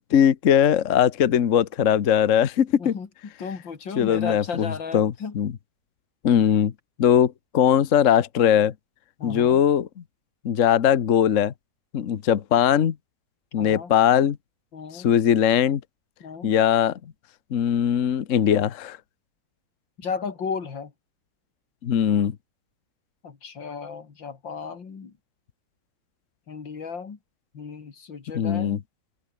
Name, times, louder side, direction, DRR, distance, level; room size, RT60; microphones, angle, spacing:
voice 1, 0.0-2.9 4.0-5.5 6.2-6.7 7.0-8.7 9.2-9.9 10.4-11.5 11.9-12.9 13.5-14.4 14.9-15.8 16.4-17.0 17.5-19.0 21.8-22.3 28.3-28.8, left 9 dB, 50° left, 1.2 m, -20 dB
voice 2, 3.4-5.3 9.2-9.6 13.6-13.9 14.7-15.1 16.2-16.5 20.0-20.9 23.2-25.1 26.5-27.2 27.5-28.8, left 5 dB, 90° left, 3.3 m, -34 dB
omnidirectional pair, 2.0 m